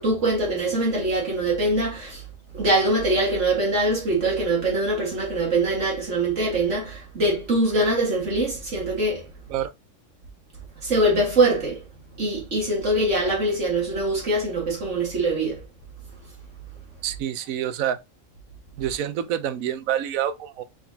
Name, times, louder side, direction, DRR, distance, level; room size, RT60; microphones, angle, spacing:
voice 1, 0.0-2.2 2.5-9.3 10.8-11.8 12.2-15.6, right 2 dB, 60° right, 2.1 m, -23 dB
voice 2, 17.0-18.0 18.8-20.6, right 10 dB, 85° right, 1.0 m, -27 dB
4.7 x 3.8 x 2.7 m
omnidirectional pair, 1.4 m